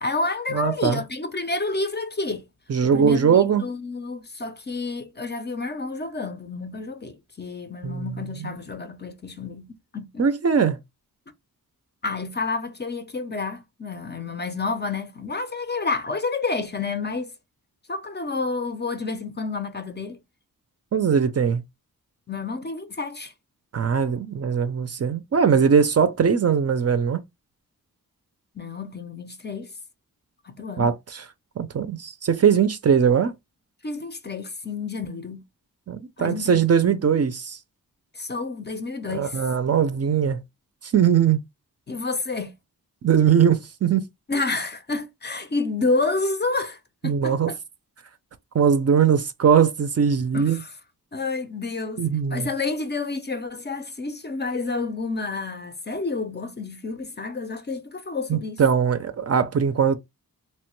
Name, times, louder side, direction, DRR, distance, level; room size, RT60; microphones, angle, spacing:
voice 1, 0.0-2.4 2.8-10.3 12.0-17.3 17.9-20.2 22.3-23.3 28.6-29.7 30.4-30.9 33.8-35.4 36.2-36.6 38.1-39.5 41.9-42.5 44.3-47.6 50.3-50.7 51.1-58.6, left 3 dB, 30° left, 0.4 m, -29 dB
voice 2, 0.5-1.0 2.7-3.6 7.8-8.5 10.2-10.8 20.9-21.6 23.7-27.2 30.8-30.9 31.6-33.3 35.9-37.6 39.1-40.4 40.8-41.4 43.0-44.0 47.0-47.5 48.5-50.6 52.0-52.5 58.3-60.0, right 7 dB, 45° right, 0.4 m, -20 dB
3.0 x 2.1 x 2.9 m
wide cardioid pair, 105°, 36 cm